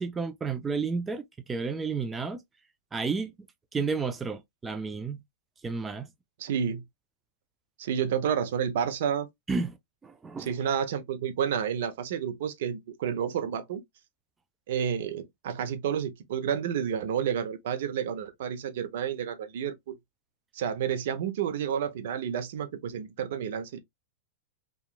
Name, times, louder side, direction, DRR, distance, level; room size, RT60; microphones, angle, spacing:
voice 1, 0.0-2.4 2.9-3.3 3.7-5.2 5.6-6.1 9.5-9.8 10.0-10.5, right 4 dB, 15° right, 0.4 m, -31 dB
voice 2, 6.4-6.8 7.8-9.3 10.4-13.8 14.7-19.9 20.5-23.8, right 8 dB, 65° right, 0.6 m, -30 dB
2.9 x 2.4 x 2.3 m
hypercardioid pair, 125°, 0 cm